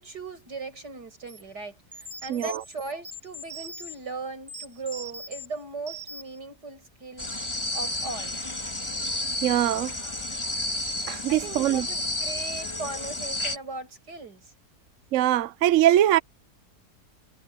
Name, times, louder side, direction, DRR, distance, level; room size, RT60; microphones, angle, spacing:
voice 1, 0.0-7.3 7.7-8.4 10.0-10.1 11.3-14.5, right 3 dB, 90° right, 7.0 m, -38 dB
sound 1, 1.3-1.4 1.9-4.0 4.5-5.5 5.9-6.4, right 1 dB, 15° right, 2.4 m, -41 dB
voice 2, 2.3-2.6 9.4-9.9 11.1-11.9 15.1-16.2, right 12 dB, 65° right, 0.9 m, -22 dB
sound 2, 7.2-13.6, left 1 dB, 15° left, 2.3 m, -31 dB
omnidirectional pair, 1.7 m